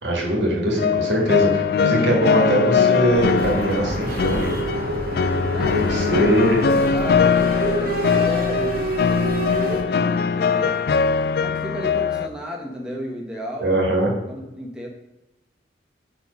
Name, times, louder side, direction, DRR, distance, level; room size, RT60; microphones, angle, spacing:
voice 1, 0.0-4.6 5.8-6.6 13.6-14.1, right 1 dB, 85° right, -1 dB, 2.1 m, -21 dB
sound 1, 0.8-12.3, left 6 dB, 55° left, 0.3 m, -21 dB
sound 2, 3.1-9.8, right 1 dB, 55° right, 1.1 m, -28 dB
voice 2, 5.5-6.3 6.8-11.0 11.4-13.8 14.3-14.9, equal, 5° right, -1 dB, 1.0 m, -34 dB
5.8 x 4.4 x 5.4 m, 0.98 s
head